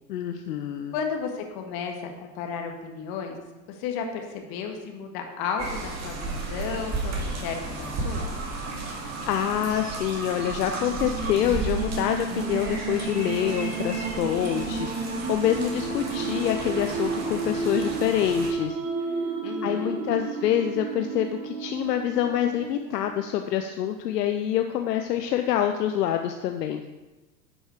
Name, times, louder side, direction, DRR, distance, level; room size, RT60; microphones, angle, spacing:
voice 1, 0.1-0.9 9.3-18.8 19.6-26.8, left 10 dB, 75° left, 6 dB, 0.7 m, -26 dB
voice 2, 0.9-3.4 3.7-8.3 19.4-20.0, left 6 dB, 45° left, 3 dB, 1.7 m, -33 dB
sound 1, 5.6-18.5, right 2 dB, 30° right, 2.1 m, -34 dB
sound 2, 8.6-9.2 9.5-9.6 10.6-23.1, right 4 dB, 50° right, 2.2 m, -32 dB
10.5 x 5.5 x 4.4 m, 1.1 s
hypercardioid pair, 100°, 49 cm